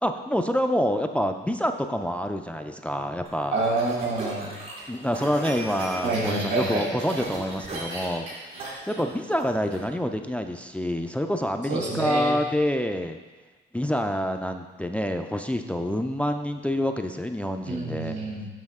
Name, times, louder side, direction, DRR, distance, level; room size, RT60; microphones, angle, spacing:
voice 1, 0.0-3.6 4.9-8.3 8.9-13.2 13.7-18.2, equal, 5° left, 6 dB, 0.4 m, -27 dB
sound 1, 3.2-9.8, right 2 dB, 80° right, 2.4 m, -37 dB
voice 2, 3.5-4.5 6.0-6.9 11.7-12.3 17.7-18.5, right 3 dB, 65° right, -2 dB, 2.1 m, -27 dB
7.6 x 5.5 x 3.6 m, 1.3 s
cardioid pair, 90°, 20 cm